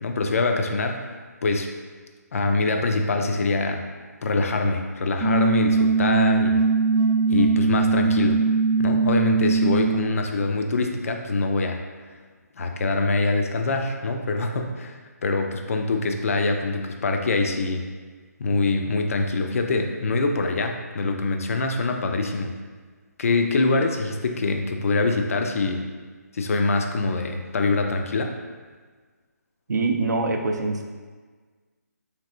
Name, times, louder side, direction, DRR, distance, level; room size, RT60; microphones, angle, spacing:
voice 1, 0.0-1.1 1.4-1.8 2.3-3.8 4.2-6.6 7.3-8.5 8.8-11.8 12.6-17.8 18.4-22.6 23.2-25.9 26.3-28.3, left 3 dB, 55° left, 4 dB, 0.4 m, -24 dB
sound 1, 5.2-10.2, right 4 dB, 30° right, 0.5 m, -21 dB
voice 2, 29.7-30.8, right 3 dB, 85° right, 3 dB, 0.4 m, -24 dB
3.3 x 2.8 x 2.4 m, 1.5 s
figure-of-eight pair, 155°, 9 cm